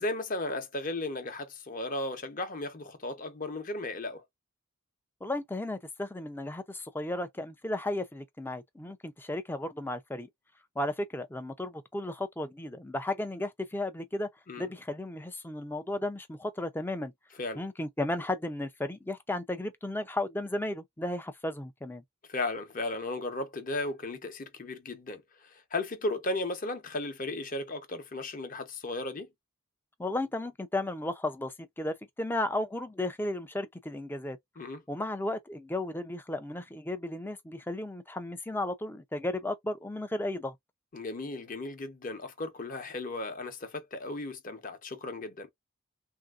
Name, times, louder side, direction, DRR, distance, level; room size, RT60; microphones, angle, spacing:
voice 1, 0.0-4.2 14.5-14.7 17.4-17.6 22.3-29.3 34.6-34.8 40.9-45.5, left 2 dB, 40° left, 0.8 m, -35 dB
voice 2, 5.2-10.3 10.8-14.3 14.6-17.1 17.5-22.0 30.0-34.4 34.9-40.5, left 1 dB, 10° left, 0.4 m, -34 dB
3.3 x 2.6 x 2.3 m
head